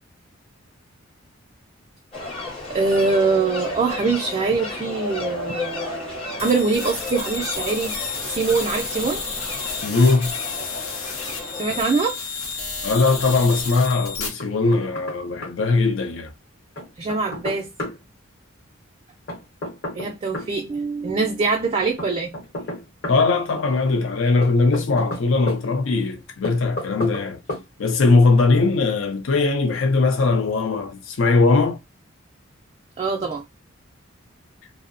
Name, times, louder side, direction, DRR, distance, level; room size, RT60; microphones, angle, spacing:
sound 1, 2.1-11.8, left 3 dB, 25° left, 0.6 m, -33 dB
voice 1, 2.7-7.9 8.3-9.2 11.5-12.2 17.0-17.7 19.9-22.3 33.0-33.4, right 4 dB, 30° right, 0.3 m, -23 dB
sound 2, 6.4-14.3, left 4 dB, 90° left, 0.8 m, -31 dB
voice 2, 9.8-10.4 12.8-16.3 23.1-27.4 27.8-31.8, left 3 dB, 70° left, 0.5 m, -20 dB
Knock, 14.4-15.2 15.4-15.5 16.8-18.0 19.3-20.5 22.0-23.2 24.4-25.6 26.4-27.2 27.5-27.7, left 1 dB, 55° left, 0.9 m, -31 dB
2.6 x 2.0 x 2.5 m
head